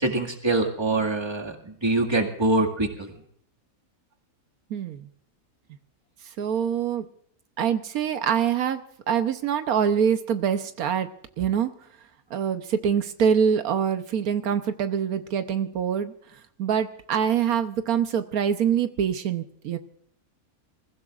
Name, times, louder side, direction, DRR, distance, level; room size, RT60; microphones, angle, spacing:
voice 1, 0.0-3.1, right 2 dB, 20° right, 4 dB, 1.9 m, -24 dB
voice 2, 4.7-5.1 6.4-7.1 7.6-8.8 9.1-11.1 11.4-11.7 12.3-16.1 16.6-19.8, right 8 dB, 85° right, 9 dB, 1.3 m, -24 dB
27.0 x 15.5 x 2.4 m, 0.65 s
omnidirectional pair, 1.5 m